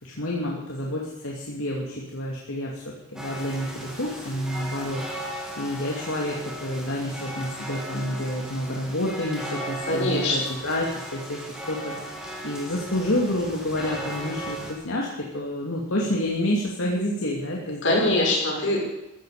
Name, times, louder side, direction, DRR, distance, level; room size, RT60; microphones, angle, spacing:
voice 1, 0.0-5.0 5.6-11.9 12.4-18.2, left 1 dB, 75° left, -2 dB, 2.6 m, -29 dB
sound 1, 3.2-14.7, equal, 5° right, 3.3 m, -37 dB
voice 2, 9.8-10.6 17.8-18.8, left 2 dB, 60° left, -2 dB, 6.3 m, -23 dB
15.5 x 15.0 x 5.1 m, 0.96 s
head